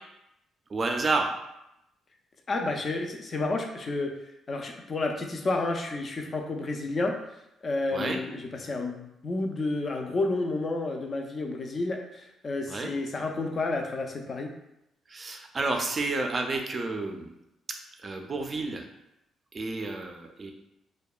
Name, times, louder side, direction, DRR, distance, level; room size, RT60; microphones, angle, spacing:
voice 1, 0.7-1.3 7.9-8.2 12.7-12.9 15.1-17.3 18.0-18.9 19.5-20.5, right 3 dB, 35° right, 4 dB, 0.4 m, -30 dB
voice 2, 2.5-4.2 4.5-7.2 7.6-14.5, left 2 dB, 40° left, 3 dB, 0.4 m, -30 dB
2.6 x 2.1 x 2.3 m, 0.85 s
cardioid pair, 90°, 0 cm